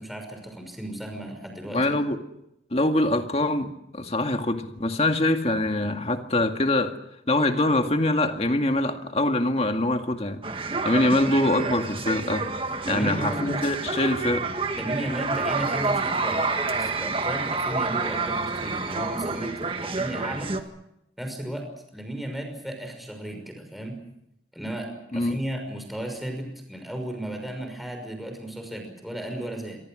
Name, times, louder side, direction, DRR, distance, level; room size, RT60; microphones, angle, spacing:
voice 1, 0.0-1.8 12.8-13.5 14.7-19.5 19.8-20.5 21.2-21.7 21.9-24.0 24.5-24.9 25.1-29.8, right 1 dB, ahead, 3 dB, 5.9 m, -34 dB
voice 2, 1.7-2.2 2.7-6.9 7.3-10.4 10.8-12.4 12.9-14.4 25.1-25.4, left 1 dB, 35° left, 5 dB, 2.1 m, -24 dB
sound 1, 10.4-20.6, right 3 dB, 30° right, 1.8 m, -28 dB
26.5 x 24.5 x 6.4 m, 0.82 s
head